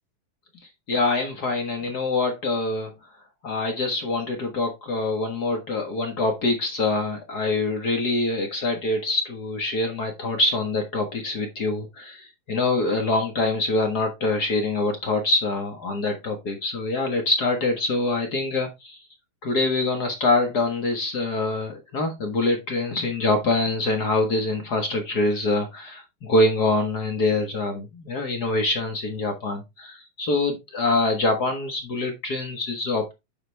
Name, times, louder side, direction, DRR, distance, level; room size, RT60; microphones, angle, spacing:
voice 1, 0.9-2.9 3.4-19.0 19.4-33.1, left 2 dB, 60° left, 4 dB, 1.0 m, -25 dB
9.8 x 5.9 x 3.3 m, 0.23 s
omnidirectional pair, 4.1 m